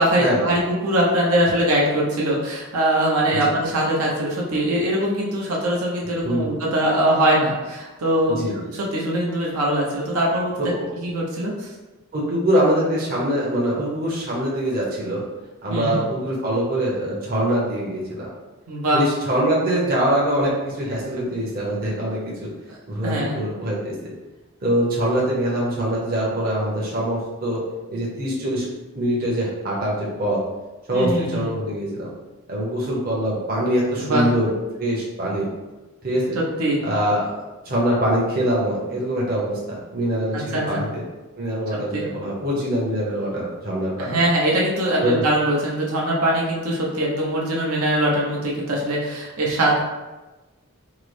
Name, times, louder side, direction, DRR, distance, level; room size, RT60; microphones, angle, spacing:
voice 1, 0.0-10.5 11.0-11.7 15.7-16.0 18.7-19.0 23.0-23.4 30.9-31.5 34.0-34.3 36.3-36.8 40.3-40.8 41.7-42.0 44.0-49.8, right 1 dB, 85° right, -3 dB, 0.7 m, -22 dB
voice 2, 10.6-10.9 12.1-15.2 15.6-18.3 18.9-22.5 22.9-23.9 24.6-27.6 27.9-28.7 28.9-30.4 30.9-32.1 32.5-34.5 34.8-35.5 36.0-36.2 36.8-39.6 39.9-41.0 41.4-44.1 45.0-45.2, right 1 dB, 45° right, -5 dB, 0.7 m, -23 dB
3.7 x 2.0 x 3.2 m, 1.1 s
head